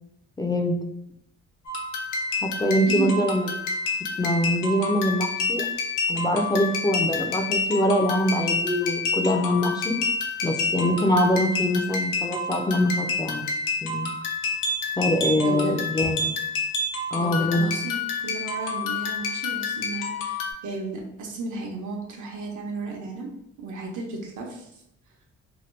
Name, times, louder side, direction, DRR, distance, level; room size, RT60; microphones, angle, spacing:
voice 1, 0.4-0.8 2.4-3.5 4.2-5.7 6.1-10.0 10.4-13.5 13.8-14.1 15.0-16.3 17.1-17.7, left 1 dB, 15° left, 3 dB, 0.4 m, -24 dB
sound 1, 1.7-20.5, left 3 dB, 90° left, 0.6 m, -28 dB
voice 2, 2.9-3.2 15.4-16.1 17.2-23.3 23.6-24.8, right 3 dB, 75° right, 0 dB, 0.9 m, -34 dB
2.8 x 2.1 x 3.2 m, 0.78 s
cardioid pair, 90°, 30 cm